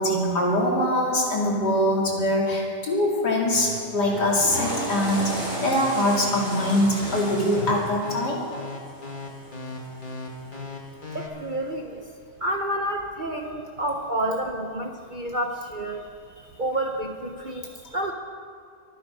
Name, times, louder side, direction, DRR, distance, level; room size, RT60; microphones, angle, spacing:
voice 1, 0.0-8.5 17.5-17.9, left 1 dB, 80° left, -3 dB, 3.4 m, -23 dB
Dance Bass, 3.5-11.3, left 2 dB, 30° left, 1.8 m, -36 dB
Water / Toilet flush, 4.1-10.4, equal, 10° right, 4.0 m, -35 dB
voice 2, 11.1-12.0 12.4-16.0 16.6-18.1, right 1 dB, 40° right, 3 dB, 0.7 m, -29 dB
25.0 x 9.2 x 5.3 m, 2.4 s
omnidirectional pair, 1.7 m